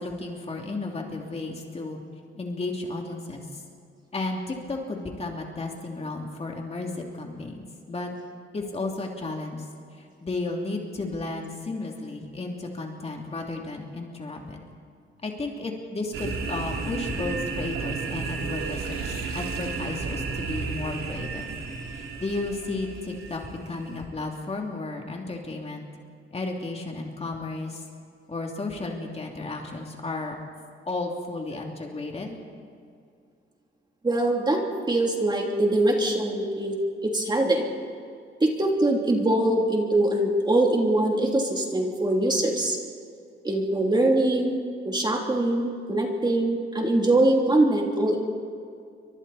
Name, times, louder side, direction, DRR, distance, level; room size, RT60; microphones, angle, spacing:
voice 1, 0.0-2.0 2.3-3.6 4.1-8.1 8.5-9.6 10.2-14.6 15.2-21.5 21.9-25.9 26.3-27.8 28.3-30.3 30.9-32.4, left 2 dB, 30° left, 0 dB, 2.9 m, -33 dB
sound 1, 16.1-24.0, right 4 dB, 75° right, 3.3 m, -33 dB
voice 2, 34.0-37.7 38.4-42.8 43.4-44.6 44.8-48.2, right 1 dB, 20° right, 0 dB, 3.1 m, -23 dB
29.5 x 24.5 x 4.3 m, 2.3 s
wide cardioid pair, 135°, 21 cm